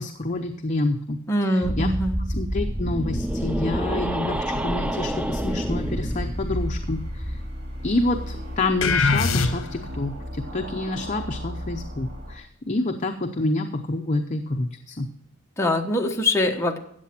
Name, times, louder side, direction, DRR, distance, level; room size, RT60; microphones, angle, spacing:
voice 1, 0.0-1.2 1.5-1.9 2.3-7.4 7.8-15.1, left 2 dB, 35° left, 4 dB, 0.7 m, -28 dB
voice 2, 1.3-2.2 15.6-16.8, left 1 dB, 15° left, 2 dB, 1.0 m, -23 dB
sound 1, 1.6-7.5, equal, 5° right, 0.4 m, -28 dB
sound 2, 5.5-12.4, equal, 55° right, 2.5 m, -36 dB
sound 3, 8.8-10.0, left 4 dB, 70° left, 1.0 m, -22 dB
13.5 x 8.3 x 4.4 m, 0.72 s
head